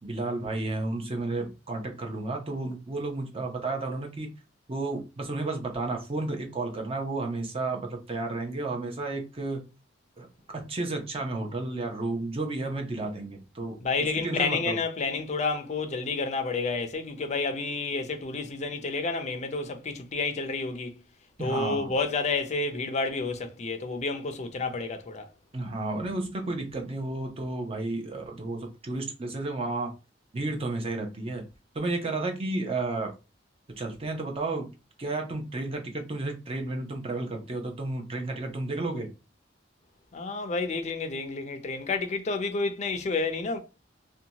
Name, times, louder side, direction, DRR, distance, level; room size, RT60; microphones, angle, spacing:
voice 1, 0.0-4.3 4.7-9.6 10.2-10.3 10.5-14.8 21.4-21.9 25.5-29.9 30.3-31.4 31.7-33.1 33.8-34.7 35.0-39.1, right 2 dB, 30° right, 0.7 m, -32 dB
voice 2, 13.8-21.0 21.4-25.3 40.1-43.6, left 4 dB, 40° left, 0.4 m, -30 dB
2.7 x 2.2 x 2.8 m
head